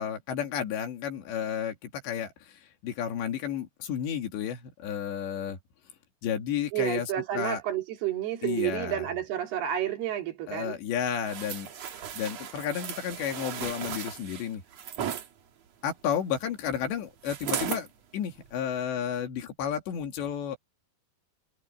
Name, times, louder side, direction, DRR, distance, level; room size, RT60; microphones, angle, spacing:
voice 1, 0.0-5.6 6.2-7.6 8.4-9.1 10.5-14.6 15.8-20.6, left 8 dB, 90° left, 4.8 m, -32 dB
voice 2, 6.7-10.8, right 11 dB, 70° right, 4.4 m, -30 dB
sound 1, 11.3-15.3 17.2-17.9 18.4-18.5, right 9 dB, 55° right, 2.2 m, -36 dB
omnidirectional pair, 4.9 m